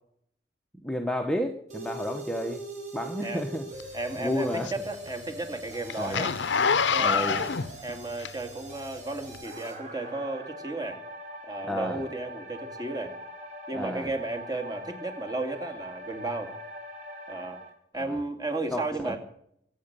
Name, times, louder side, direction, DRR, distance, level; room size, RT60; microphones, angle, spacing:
voice 1, 0.8-2.6 2.9-3.7 4.2-4.7 6.0-6.3 7.0-7.5 11.6-12.0 13.7-14.1 17.9-18.2 18.7-19.2, left 1 dB, 5° left, 4 dB, 1.0 m, -31 dB
sound 1, 1.7-17.7, right 1 dB, 40° right, 4.7 m, -42 dB
Zipper (clothing), 3.8-8.7 9.3-9.4, left 6 dB, 75° left, 0.7 m, -27 dB
voice 2, 3.9-6.4 6.9-7.5 7.8-11.0 11.4-13.1 13.7-16.5 17.3-17.6 17.9-19.2, right 2 dB, 20° right, 4 dB, 2.4 m, -34 dB
24.0 x 8.9 x 6.8 m, 0.71 s
head